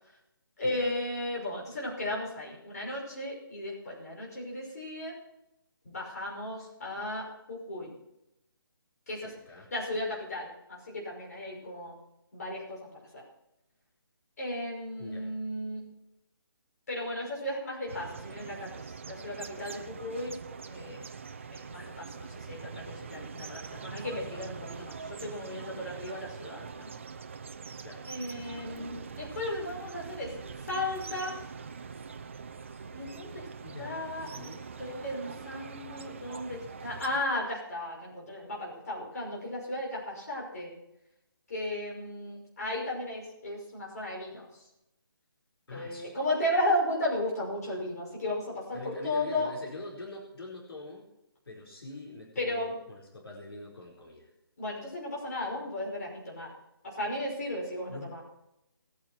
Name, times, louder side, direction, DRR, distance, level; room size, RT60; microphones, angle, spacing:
voice 1, 0.6-5.1 5.8-7.9 9.1-9.3 9.7-12.0 12.3-12.8 13.1-13.2 14.4-15.9 16.9-20.4 20.6-21.0 21.5-26.9 28.1-30.3 30.7-31.3 32.9-33.4 33.8-34.3 34.8-40.7 41.5-44.4 45.7-49.5 52.4-52.7 54.6-56.5 56.8-58.2, left 1 dB, 40° left, -3 dB, 5.9 m, -35 dB
voice 2, 9.2-9.7 15.0-15.3 27.8-28.0 33.6-34.6 45.7-46.2 48.7-51.0 51.4-54.3 57.9-58.2, left 2 dB, 80° left, -1 dB, 4.5 m, -44 dB
sound 1, 17.9-37.2, right 5 dB, 30° right, 0.6 m, -43 dB
20.5 x 9.0 x 4.5 m, 0.88 s
hypercardioid pair, 175°, 12 cm